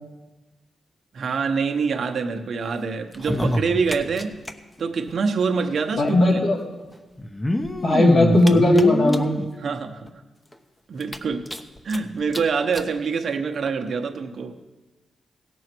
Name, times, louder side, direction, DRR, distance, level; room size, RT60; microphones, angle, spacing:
voice 1, 1.1-4.3 4.8-6.4 9.6-10.1 10.9-11.5 11.8-14.6, right 5 dB, 65° right, 4 dB, 1.0 m, -25 dB
sound 1, 3.1-4.5 4.8-4.9 5.1-5.2 6.2-6.3 7.2-9.5 10.1-10.2 10.5-10.6 11.0-12.0 12.3-12.4 12.7-12.9 13.7-13.8, left 1 dB, 20° left, 0.9 m, -26 dB
voice 2, 6.0-6.6 7.8-9.3, left 1 dB, 65° left, -3 dB, 2.5 m, -17 dB
17.0 x 6.3 x 4.5 m, 1.1 s
cardioid pair, 60°, 0 cm